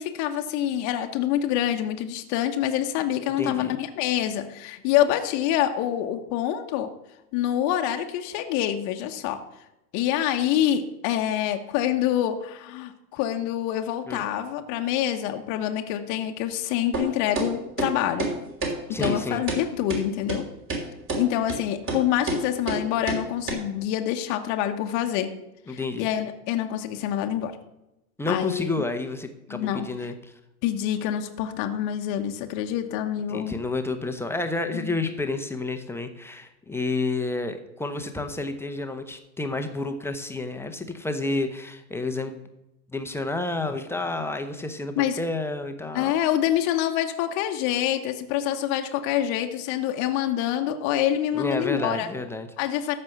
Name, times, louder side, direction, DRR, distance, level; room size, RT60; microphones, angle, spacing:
voice 1, 0.0-6.9 7.3-9.4 9.9-18.3 18.9-20.4 21.2-25.3 25.7-27.5 28.3-28.7 29.5-29.9 30.6-33.6 34.7-35.0 45.0-45.2 45.9-52.1 52.6-53.0, left 11 dB, 40° left, 5 dB, 1.1 m, -26 dB
voice 2, 3.4-3.8 14.1-14.2 18.9-19.4 25.7-26.1 28.2-30.3 33.3-42.5 42.9-46.1 51.3-52.5, left 2 dB, 5° left, 6 dB, 1.0 m, -30 dB
sound 1, 16.9-17.1 17.4-17.5 17.8-17.9 18.2-18.3 18.6-18.7 19.0-19.2 19.5-19.6 19.9-20.0 20.3-20.4 20.7-20.8 21.1-21.2 21.5-21.6 21.9-22.0 22.3-22.4 22.7-22.8 23.1-23.2 23.5-23.6, right 3 dB, 30° right, 3.3 m, -27 dB
13.5 x 5.4 x 7.1 m, 0.91 s
figure-of-eight pair, 95°, 44 cm